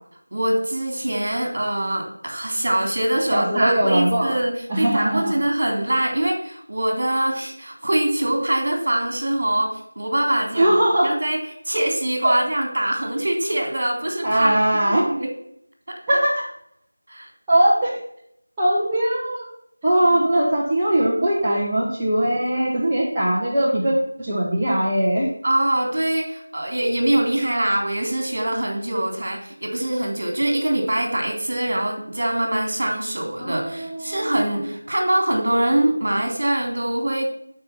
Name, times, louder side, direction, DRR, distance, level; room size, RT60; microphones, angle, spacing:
voice 1, 0.3-9.7 9.9-10.7 11.0-11.4 11.7-14.6 14.9-15.3 17.1-17.3 25.4-37.3, right 1 dB, 45° right, 2 dB, 3.3 m, -23 dB
voice 2, 3.3-4.4 4.7-5.3 10.5-11.1 12.2-12.3 14.2-15.1 16.1-16.4 17.5-18.0 18.6-19.5 19.8-25.3 33.4-34.6, right 1 dB, 10° right, -10 dB, 1.2 m, -20 dB
11.5 x 5.4 x 7.2 m, 0.73 s
figure-of-eight pair, 175°, 0 cm